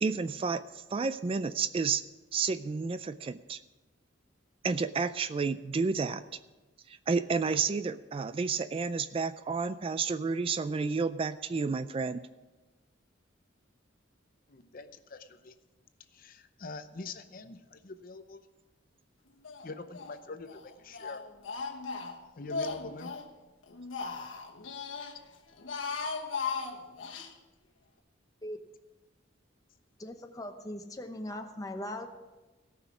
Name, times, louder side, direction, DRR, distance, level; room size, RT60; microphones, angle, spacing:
voice 1, 0.0-2.0 2.3-3.6 4.6-6.2 6.9-12.3, right 4 dB, 30° right, 13 dB, 0.3 m, -31 dB
voice 2, 14.5-15.5 16.1-18.4 19.6-21.2 22.4-23.1, left 3 dB, 50° left, 10 dB, 0.7 m, -44 dB
Speech, 19.4-20.2 20.5-23.3 23.7-25.1 25.5-27.3, left 4 dB, 90° left, 1.3 m, -37 dB
voice 3, 30.0-32.1, left 1 dB, 20° left, 6 dB, 0.9 m, -39 dB
17.5 x 6.0 x 6.1 m, 1.1 s
head